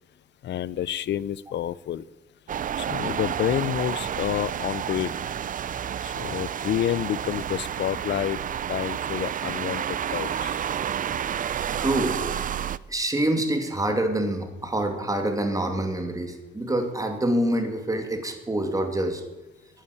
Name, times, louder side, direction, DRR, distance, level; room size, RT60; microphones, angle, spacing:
voice 1, 0.4-2.0 2.8-5.1 6.0-8.4 8.7-10.6, left 11 dB, 65° left, 20 dB, 0.6 m, -29 dB
sound 1, 2.5-12.8, right 9 dB, 45° right, 0.5 m, -30 dB
voice 2, 11.8-12.2 12.9-19.2, right 1 dB, 15° right, 5 dB, 2.6 m, -26 dB
11.5 x 9.0 x 9.9 m, 1.1 s
cardioid pair, 90°, 20 cm